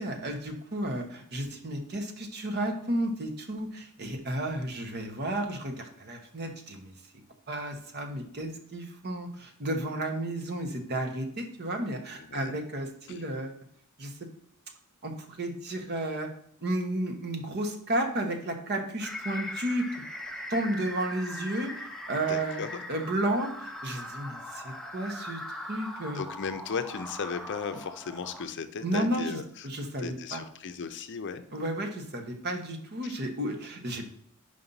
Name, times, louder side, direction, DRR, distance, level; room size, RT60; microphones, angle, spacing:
voice 1, 0.0-6.9 7.5-13.6 14.0-14.2 15.0-16.3 16.6-19.9 20.5-22.6 22.9-25.4 25.7-26.2 28.8-29.4 29.6-30.4 31.5-34.1, right 1 dB, 50° right, 5 dB, 1.1 m, -32 dB
voice 2, 12.2-12.6 13.1-13.2 22.3-22.8 26.1-29.7 30.0-31.4, left 5 dB, 55° left, 9 dB, 0.6 m, -36 dB
sound 1, 19.0-28.4, left 1 dB, ahead, 0.6 m, -40 dB
5.5 x 5.1 x 3.9 m, 0.68 s
head